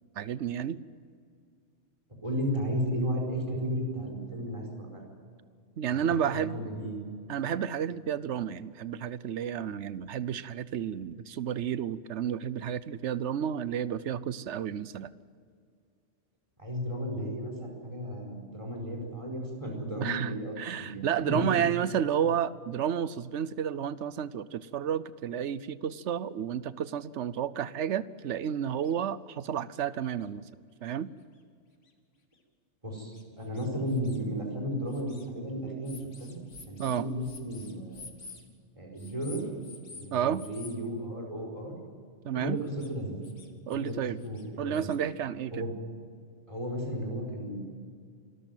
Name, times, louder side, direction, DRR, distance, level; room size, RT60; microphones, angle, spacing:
voice 1, 0.2-0.8 5.8-6.6 7.3-15.1 20.0-30.5 30.8-31.1 36.8-37.1 40.1-40.4 42.2-42.6 43.7-44.2 44.6-45.6, right 9 dB, 70° right, 17 dB, 1.0 m, -31 dB
voice 2, 2.2-5.1 5.9-7.0 16.6-21.4 32.8-36.4 36.7-38.1 38.8-39.5 39.9-41.7 42.3-43.2 43.7-43.9 44.2-44.9 45.5-45.8 46.5-47.6, equal, 25° right, -1 dB, 4.9 m, -34 dB
sound 1, 28.4-28.5 28.8-28.9 29.8-29.9 30.2-30.3 30.9-31.0 31.9-32.0 32.3-32.4 33.1-34.2 34.9-35.3 35.8-38.4 39.0-40.1 40.3-40.8 42.6-42.9 43.2-43.9 44.2-45.0, left 4 dB, 80° left, 2.3 m, -49 dB
26.0 x 13.5 x 9.2 m, 2.2 s
omnidirectional pair, 1.2 m